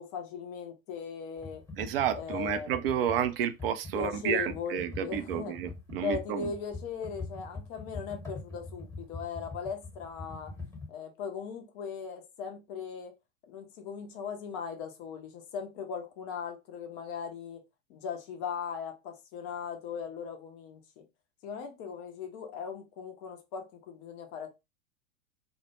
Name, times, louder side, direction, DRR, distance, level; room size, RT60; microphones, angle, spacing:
voice 1, 0.0-1.6 2.1-2.7 3.9-5.6 6.0-10.5 10.9-13.1 13.5-17.6 17.9-21.0 21.4-24.5, left 6 dB, 25° left, 0.4 m, -38 dB
Computer keyboard, 1.4-10.9, left 3 dB, 10° left, 0.8 m, -43 dB
voice 2, 1.8-6.5, right 9 dB, 45° right, 0.4 m, -31 dB
2.1 x 2.0 x 3.0 m
figure-of-eight pair, 90°, 41 cm